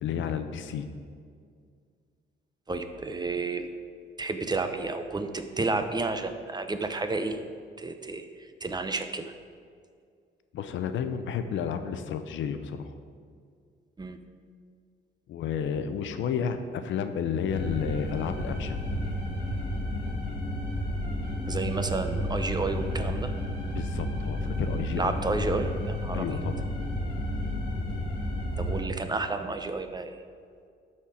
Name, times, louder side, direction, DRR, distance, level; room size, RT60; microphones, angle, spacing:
voice 1, 0.0-0.9 10.5-12.9 15.3-18.8 23.8-25.2 26.1-26.7, left 7 dB, 75° left, 9 dB, 0.7 m, -31 dB
voice 2, 2.7-3.7 4.2-7.4 7.8-9.3 14.0-14.2 21.5-23.3 25.0-26.3 28.6-30.2, right 3 dB, 20° right, 8 dB, 0.6 m, -31 dB
sound 1, 17.5-28.8, left 1 dB, 25° left, 2.1 m, -31 dB
12.0 x 4.4 x 4.9 m, 2.2 s
cardioid pair, 90°, 20 cm